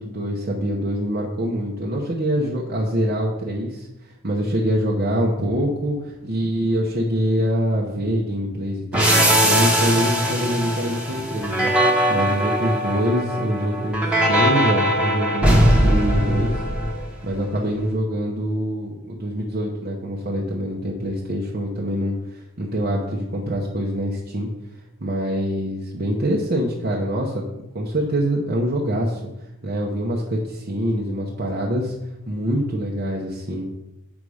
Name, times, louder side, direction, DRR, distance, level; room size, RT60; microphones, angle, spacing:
voice 1, 0.0-11.7 12.1-16.6 17.2-24.5 25.0-27.4 27.7-29.2 29.6-31.9 32.3-33.6, equal, 45° right, -3 dB, 1.0 m, -25 dB
sound 1, 8.9-17.4, equal, 5° right, 1.2 m, -20 dB
7.4 x 5.5 x 4.9 m, 0.94 s
head